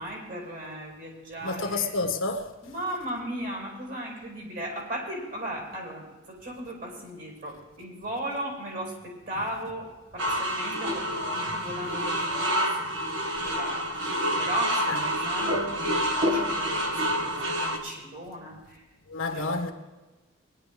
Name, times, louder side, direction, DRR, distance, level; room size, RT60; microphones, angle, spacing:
voice 1, 0.0-1.9 2.6-15.8 16.1-18.8 19.3-19.5, right 1 dB, 45° right, 4.8 m, -37 dB
voice 2, 1.4-2.5 11.5-11.6 14.9-15.0 19.1-19.7, left 3 dB, 85° left, 1.5 m, -29 dB
sound 1, 10.2-17.8, equal, 65° right, 1.5 m, -28 dB
20.5 x 11.0 x 3.5 m
head